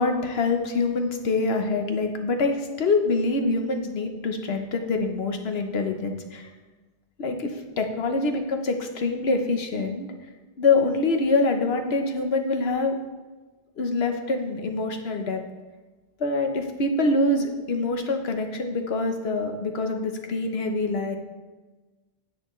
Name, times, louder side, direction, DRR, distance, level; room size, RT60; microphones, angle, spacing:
voice 1, 0.0-6.5 7.2-10.1 10.6-13.0 13.8-15.4 16.2-21.2, left 3 dB, 80° left, 5 dB, 1.2 m, -25 dB
10.5 x 7.8 x 3.1 m, 1.3 s
omnidirectional pair, 1.0 m